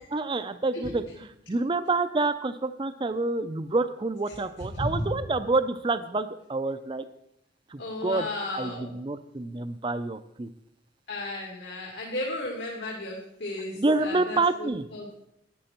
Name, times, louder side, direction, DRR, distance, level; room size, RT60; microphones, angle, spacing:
voice 1, 0.1-1.0 1.5-7.0 7.7-8.3 8.5-10.5 13.8-14.8, right 3 dB, 25° right, 11 dB, 0.5 m, -28 dB
voice 2, 0.7-1.2 4.3-4.4 4.7-5.1 7.8-8.9 11.1-15.3, left 1 dB, 70° left, -2 dB, 2.2 m, -34 dB
11.5 x 9.8 x 4.4 m, 0.78 s
head